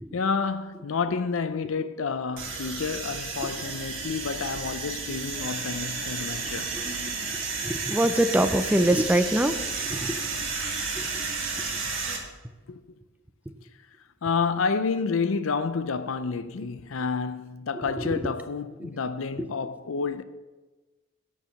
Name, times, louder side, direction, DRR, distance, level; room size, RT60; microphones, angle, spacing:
voice 1, 0.1-6.7 12.7-12.8 14.2-20.2, left 5 dB, 70° left, 0.5 m, -29 dB
sound 1, 2.4-12.2, right 4 dB, 65° right, 2.0 m, -32 dB
voice 2, 7.6-9.6 9.9-10.2 11.0-11.1 11.5-11.6 18.0-18.3 18.8-18.9, right 1 dB, 5° right, 0.3 m, -24 dB
11.0 x 4.8 x 7.0 m
head